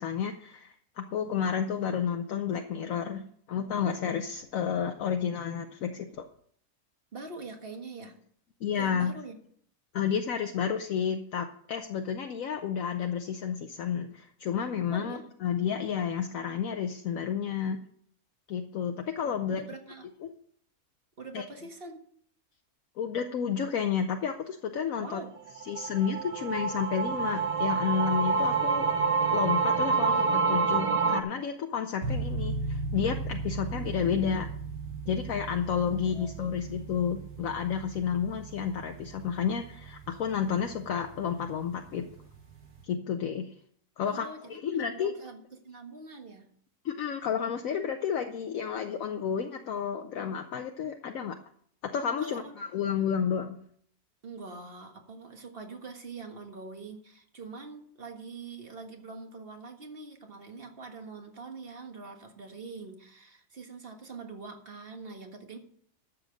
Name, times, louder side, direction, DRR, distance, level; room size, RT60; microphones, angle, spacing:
voice 1, 0.0-6.3 8.6-9.1 9.9-17.8 18.5-19.6 20.2-20.3 21.3-21.4 23.0-25.2 25.7-28.9 29.3-34.5 35.1-42.0 42.8-43.5 44.0-45.2 46.8-51.4 51.8-53.6, left 7 dB, 65° left, 5 dB, 1.1 m, -31 dB
voice 2, 7.1-8.1 8.8-9.4 14.9-15.3 19.5-20.1 21.2-22.1 25.0-25.4 35.8-36.6 44.0-46.5 52.2-52.5 54.2-65.6, right 3 dB, 40° right, 4 dB, 1.7 m, -44 dB
sound 1, 25.5-31.2, right 5 dB, 55° right, 0.3 m, -27 dB
sound 2, 32.0-42.8, right 3 dB, 85° right, 2.2 m, -38 dB
13.0 x 7.3 x 5.1 m, 0.62 s
omnidirectional pair, 1.6 m